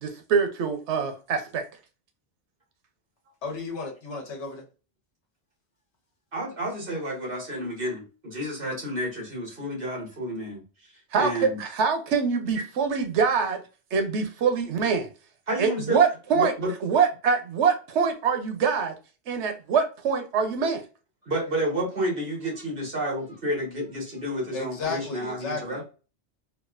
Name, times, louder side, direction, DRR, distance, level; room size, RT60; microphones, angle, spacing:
voice 1, 0.0-1.6 11.1-13.6 13.9-15.1 15.6-16.5 16.8-18.9 19.3-20.8, right 6 dB, 85° right, 1.0 m, -24 dB
voice 2, 3.4-4.6 24.5-25.8, left 4 dB, 85° left, 1.3 m, -33 dB
voice 3, 6.3-10.6 11.2-11.6 15.5-16.0 16.3-16.7 21.3-25.9, equal, 55° right, 1.8 m, -30 dB
4.1 x 2.4 x 2.5 m
omnidirectional pair, 1.1 m